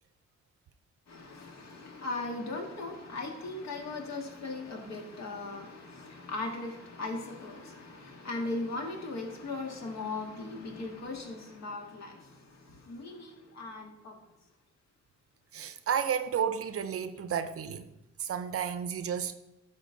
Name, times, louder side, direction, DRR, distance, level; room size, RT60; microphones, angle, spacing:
voice 1, 1.1-12.4 12.6-14.2, left 2 dB, 60° left, 1.8 m, -38 dB
voice 2, 15.5-17.9 18.2-19.3, right 8 dB, 50° right, 0.6 m, -32 dB
12.0 x 4.2 x 3.9 m
cardioid pair, 90°, 30 cm